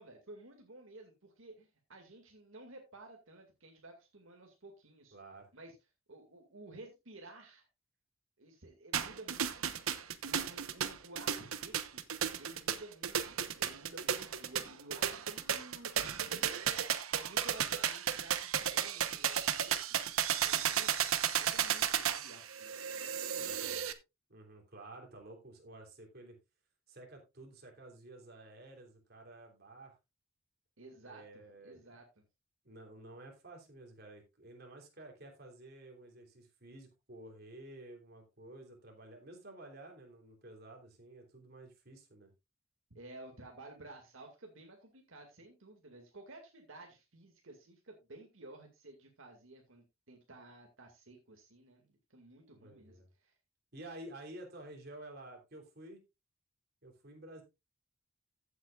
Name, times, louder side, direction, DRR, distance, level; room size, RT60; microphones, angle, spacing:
voice 1, 0.0-5.1 5.5-5.8 6.1-7.7 8.4-9.8 10.3-12.0 12.4-16.8 17.1-19.8 20.4-21.1 21.3-23.9 30.8-32.2 42.9-53.3, right 2 dB, 70° right, 2 dB, 2.2 m, -54 dB
voice 2, 5.1-5.5 23.4-23.9 24.3-26.4 26.9-29.9 31.0-32.0 32.6-42.3 52.6-53.1 53.7-56.0 56.8-57.4, right 1 dB, 50° right, 2 dB, 3.3 m, -52 dB
sound 1, 8.9-23.9, right 9 dB, 90° right, 1.0 m, -34 dB
15.0 x 8.2 x 2.4 m, 0.24 s
head